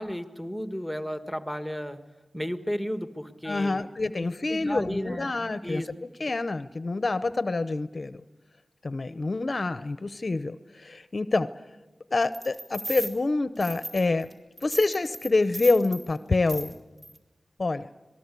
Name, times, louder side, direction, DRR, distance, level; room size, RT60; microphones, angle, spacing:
voice 1, 0.0-2.0 2.3-3.9 4.2-5.3 5.6-5.9, equal, ahead, 9 dB, 1.4 m, -33 dB
voice 2, 3.4-5.8 6.2-8.2 8.8-11.5 12.1-14.3 14.6-16.7 17.6-17.9, left 3 dB, 45° left, 13 dB, 0.7 m, -27 dB
sound 1, 12.3-13.1 13.6-14.3 14.6-16.0 16.5-16.7 17.0-17.2, right 1 dB, 40° right, 3.3 m, -37 dB
26.5 x 19.5 x 8.3 m, 1.1 s
wide cardioid pair, 70°, 0 cm